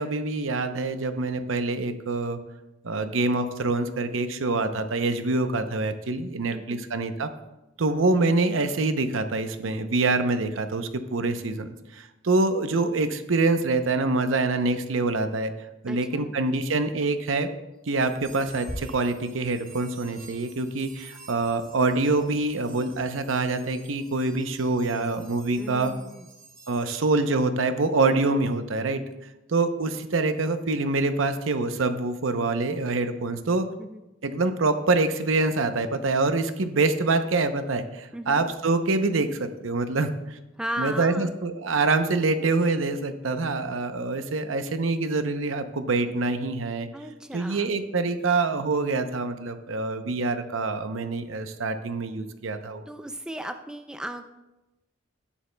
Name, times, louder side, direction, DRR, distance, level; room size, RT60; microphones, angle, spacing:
voice 1, 0.0-2.4 2.8-7.3 7.8-11.7 11.9-15.5 15.8-17.5 17.9-25.9 26.7-29.0 29.5-33.7 34.2-40.4 40.8-46.9 47.3-52.8, right 3 dB, 80° right, 9 dB, 0.7 m, -25 dB
voice 2, 6.5-6.8 15.9-16.3 25.6-26.3 33.8-34.0 38.1-38.5 40.6-41.3 46.9-47.7 52.9-54.3, right 1 dB, 5° right, 7 dB, 0.4 m, -36 dB
sound 1, 17.9-27.4, right 1 dB, 50° right, 2.9 m, -46 dB
12.5 x 10.0 x 2.2 m, 0.99 s
head